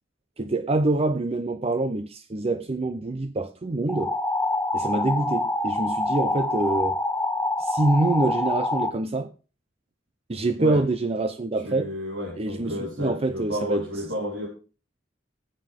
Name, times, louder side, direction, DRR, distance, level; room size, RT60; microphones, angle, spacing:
voice 1, 0.4-4.1 4.7-7.0 7.6-9.3 10.3-11.9 12.4-13.9, right 2 dB, 30° right, 0.6 m, -25 dB
sound 1, 3.9-8.9, left 2 dB, 10° left, 0.9 m, -26 dB
voice 2, 11.6-14.5, equal, 80° right, 3.6 m, -31 dB
20.0 x 7.6 x 3.5 m
head